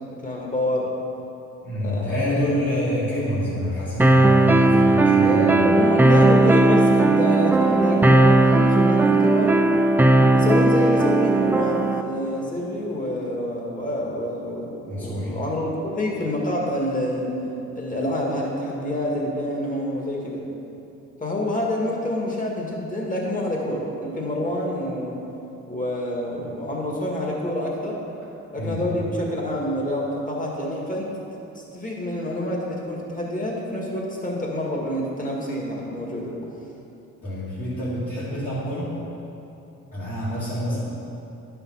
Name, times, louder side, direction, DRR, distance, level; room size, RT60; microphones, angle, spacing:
voice 1, 0.1-0.9 1.8-2.3 5.2-9.6 10.3-17.4 17.7-20.4 21.2-25.2 25.7-28.0 28.5-31.1 31.5-36.3, left 1 dB, 25° left, -2 dB, 2.0 m, -27 dB
voice 2, 1.6-5.6 14.9-15.3 28.6-28.8 37.2-39.0 39.9-40.8, left 1 dB, 40° left, -10 dB, 2.4 m, -27 dB
sound 1, 4.0-12.0, right 2 dB, 5° right, 0.4 m, -17 dB
10.5 x 5.7 x 5.6 m, 2.9 s
cardioid pair, 90°, 30 cm